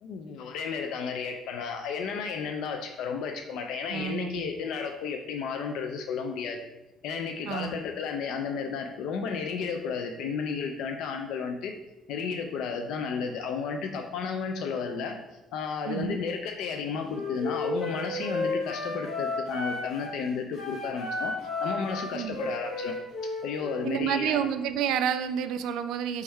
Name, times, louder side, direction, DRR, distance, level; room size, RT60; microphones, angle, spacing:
voice 1, 0.0-6.6 7.0-11.7 12.1-21.3 21.6-23.0 23.4-24.5, left 5 dB, 70° left, 5 dB, 0.3 m, -33 dB
voice 2, 3.9-4.5 7.5-7.8 15.9-16.2 22.1-22.3 23.8-26.2, right 9 dB, 80° right, 10 dB, 0.3 m, -29 dB
Wind instrument woodwind instrument, 17.1-20.2 20.5-23.9, left 2 dB, 45° left, 1.2 m, -33 dB
3.4 x 3.1 x 4.4 m, 0.98 s
cardioid pair, 165°, 0 cm